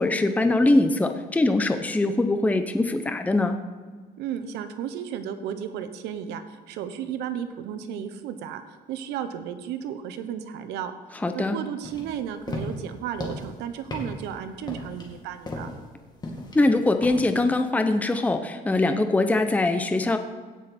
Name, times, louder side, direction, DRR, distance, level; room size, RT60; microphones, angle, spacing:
voice 1, 0.0-3.6 11.2-11.6 16.5-20.2, left 2 dB, 10° left, 7 dB, 0.7 m, -22 dB
voice 2, 4.2-6.4 6.7-8.6 8.9-15.7, right 9 dB, 90° right, 10 dB, 1.0 m, -34 dB
sound 1, 11.8-17.4, left 1 dB, 25° left, 2.3 m, -36 dB
16.5 x 6.4 x 4.3 m, 1.5 s
cardioid pair, 110°, 17 cm